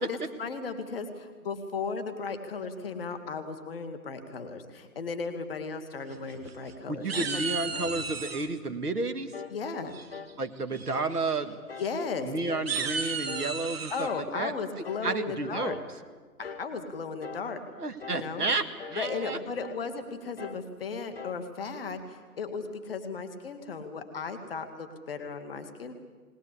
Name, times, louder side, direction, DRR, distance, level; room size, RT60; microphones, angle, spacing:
voice 1, 0.0-7.4 7.7-7.9 9.5-9.9 11.8-12.3 13.9-15.7 16.4-17.6 18.1-18.5 18.9-25.9, left 4 dB, ahead, -16 dB, 0.7 m, -36 dB
sound 1, 6.1-6.7 7.1-8.5 9.9-10.3 10.7-11.0 11.2-11.4 11.8-11.9 12.5-14.1, right 5 dB, 40° right, 1.9 m, -34 dB
voice 2, 6.9-9.3 10.4-11.6 12.2-14.5 15.0-15.8 17.8-19.4, right 3 dB, 80° right, 8 dB, 1.9 m, -31 dB
sound 2, 9.3-9.6 10.1-10.4 10.9-11.2 11.7-12.0 12.5-12.8 13.3-13.6 14.1-14.4 14.8-15.1 15.6-15.9 16.4-16.7 17.2-17.5 18.0-18.3 18.8-19.1 19.6-19.9 20.4-20.7 21.2-21.5, left 6 dB, 40° left, 0.8 m, -43 dB
20.5 x 19.0 x 8.6 m, 1.4 s
figure-of-eight pair, 155°, 46 cm